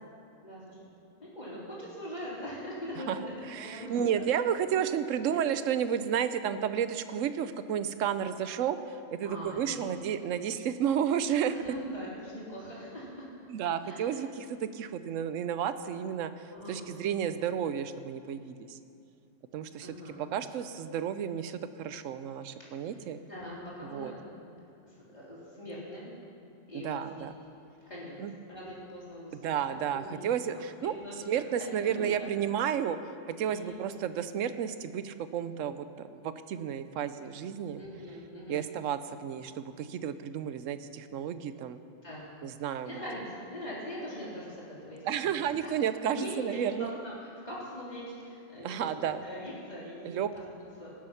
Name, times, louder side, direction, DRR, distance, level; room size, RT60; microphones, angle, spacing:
voice 1, 0.4-0.8 1.2-3.2 3.5-4.4 5.3-5.4 9.2-9.8 11.5-13.3 13.8-14.2 16.5-16.9 19.8-20.3 22.8-22.9 23.2-24.3 24.8-26.1 26.7-27.3 27.9-28.2 28.5-30.5 30.9-31.4 31.8-32.3 33.5-33.8 37.7-38.7 42.0-42.3 42.8-45.0 45.4-45.7 46.1-50.4 50.8-50.9, equal, 35° left, -7 dB, 3.7 m, -42 dB
voice 2, 3.5-11.6 13.5-18.8 19.5-23.2 23.9-24.1 26.7-27.3 28.2-28.3 29.4-31.0 31.3-33.0 33.3-37.8 38.5-41.8 42.4-42.9 45.1-46.9 48.6-49.2 50.0-50.3, right 8 dB, 90° right, 12 dB, 1.0 m, -32 dB
18.5 x 7.7 x 5.7 m, 2.6 s
omnidirectional pair, 1.3 m